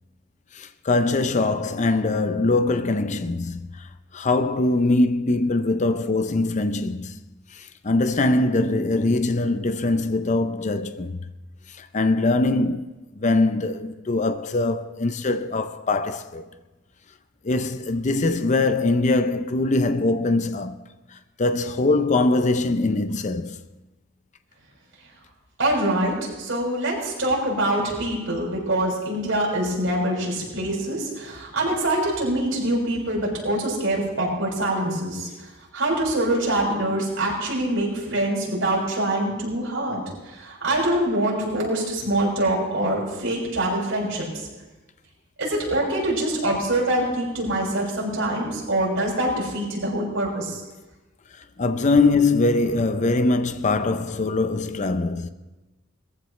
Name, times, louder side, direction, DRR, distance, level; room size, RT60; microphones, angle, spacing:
voice 1, 0.5-7.1 7.5-11.2 11.7-16.5 17.4-20.8 21.1-23.6 51.6-55.3, left 2 dB, 35° left, 0.6 m, -22 dB
voice 2, 25.6-44.5 45.4-50.6, right 1 dB, 75° right, 6.2 m, -25 dB
21.0 x 14.5 x 3.2 m
head